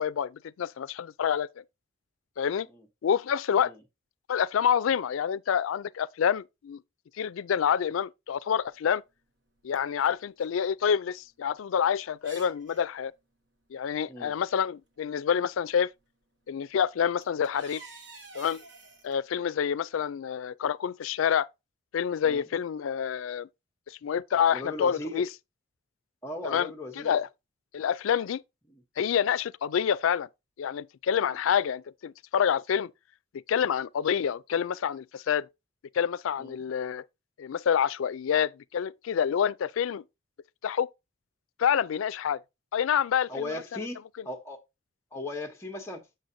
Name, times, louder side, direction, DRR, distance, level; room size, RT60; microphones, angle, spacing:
voice 1, 0.0-1.5 2.4-2.7 3.0-3.7 4.3-6.8 7.2-9.0 9.6-13.1 13.7-15.9 16.5-17.8 18.3-18.6 19.0-21.5 21.9-23.5 23.9-25.3 26.4-27.3 27.7-28.4 29.0-30.3 30.6-32.9 33.5-35.5 35.9-37.0 37.4-40.0 40.6-40.9 41.6-42.4 42.7-43.3 43.7-43.9, left 8 dB, 90° left, 0.4 m, -27 dB
sound 1, 8.7-8.8 9.5-10.6 10.9-11.0 11.6-11.7 12.2-12.9 14.3-14.4 15.0-15.4 16.6-16.7 17.0-19.2, right 3 dB, 60° right, 1.2 m, -49 dB
voice 2, 24.5-25.3 26.2-27.2 28.7-28.8 36.4-36.7 43.3-44.6 45.1-46.0, left 2 dB, 15° left, 0.9 m, -38 dB
7.8 x 6.6 x 2.7 m
head